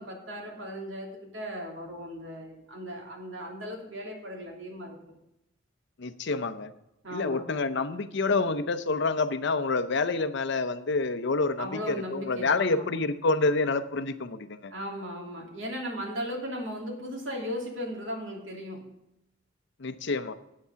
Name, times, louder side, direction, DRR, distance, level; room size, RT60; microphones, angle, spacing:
voice 1, 0.0-5.1 7.0-7.4 11.6-12.9 14.7-19.0, equal, 75° right, -1 dB, 2.9 m, -37 dB
voice 2, 6.0-6.7 7.1-14.7 19.8-20.3, left 3 dB, 60° left, 11 dB, 0.6 m, -28 dB
8.5 x 8.3 x 5.7 m, 0.86 s
head